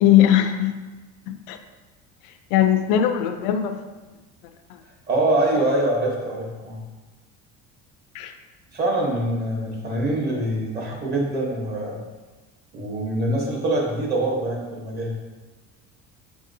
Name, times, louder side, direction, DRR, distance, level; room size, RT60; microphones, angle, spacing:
voice 1, 0.0-0.8 1.3-1.6 2.5-3.8 8.1-8.3, left 11 dB, 85° left, 7 dB, 0.5 m, -19 dB
voice 2, 5.1-6.8 8.7-12.0 12.7-15.1, right 1 dB, 35° right, -2 dB, 1.0 m, -24 dB
5.8 x 2.7 x 2.6 m, 1.2 s
cardioid pair, 140°, 29 cm